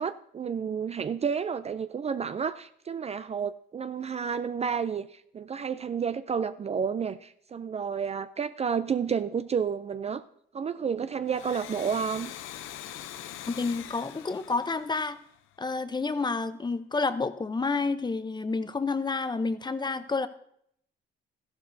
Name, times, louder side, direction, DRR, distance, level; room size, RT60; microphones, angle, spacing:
voice 1, 0.0-10.2 10.5-12.3, right 6 dB, 30° right, 12 dB, 0.4 m, -31 dB
Domestic sounds home sounds, 11.2-15.7, left 11 dB, 85° left, 0.6 m, -43 dB
voice 2, 13.5-15.2 15.6-20.3, left 4 dB, 20° left, 12 dB, 0.7 m, -29 dB
13.5 x 11.5 x 2.7 m, 0.69 s
cardioid pair, 90°, 20 cm